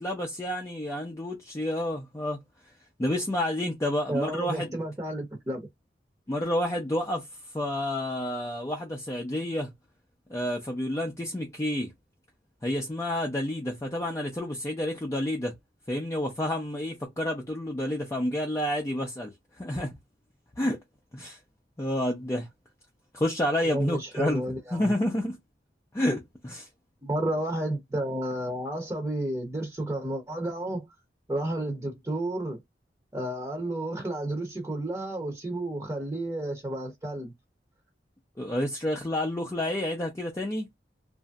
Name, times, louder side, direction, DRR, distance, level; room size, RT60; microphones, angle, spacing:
voice 1, 0.0-2.4 3.0-4.8 6.3-7.2 7.5-9.7 10.3-11.9 12.6-15.5 15.9-20.0 20.6-20.8 21.1-21.4 21.8-22.5 23.1-24.4 24.7-25.4 25.9-26.7 38.4-40.7, left 1 dB, 15° left, 0.5 m, -29 dB
voice 2, 4.1-5.7 23.7-24.9 27.0-30.9 31.3-32.6 33.1-37.3, right 1 dB, 20° right, 0.8 m, -31 dB
2.9 x 2.6 x 2.3 m
head